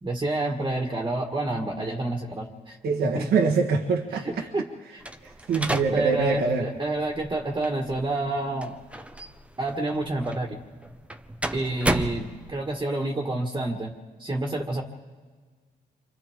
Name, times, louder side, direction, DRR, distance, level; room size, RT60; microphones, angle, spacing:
voice 1, 0.0-2.8 3.2-3.3 4.2-5.0 5.9-8.7 9.6-10.6 11.5-13.9 14.2-14.8, right 2 dB, 25° right, 1 dB, 1.9 m, -29 dB
voice 2, 2.8-4.2 5.2-6.7, right 4 dB, 75° right, 2 dB, 1.5 m, -24 dB
sound 1, 5.0-12.8, right 1 dB, 5° right, 0.9 m, -34 dB
29.0 x 25.0 x 3.7 m, 1.5 s
cardioid pair, 85°, 17 cm